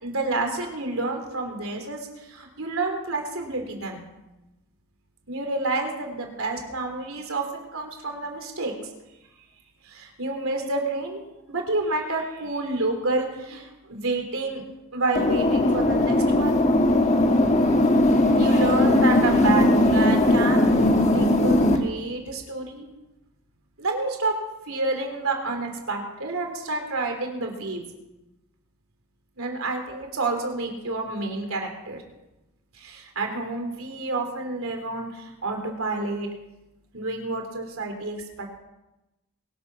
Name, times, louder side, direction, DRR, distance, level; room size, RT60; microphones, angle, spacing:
voice 1, 0.0-4.0 5.3-8.7 9.8-11.2 11.5-14.6 14.9-16.6 18.4-20.7 21.1-22.9 23.8-24.3 24.7-27.8 29.4-32.0 32.7-36.3 36.9-38.6, right 2 dB, 80° right, 3 dB, 3.3 m, -29 dB
sound 1, 15.2-21.8, left 1 dB, 35° left, 1.4 m, -19 dB
23.0 x 8.2 x 6.1 m, 0.98 s
head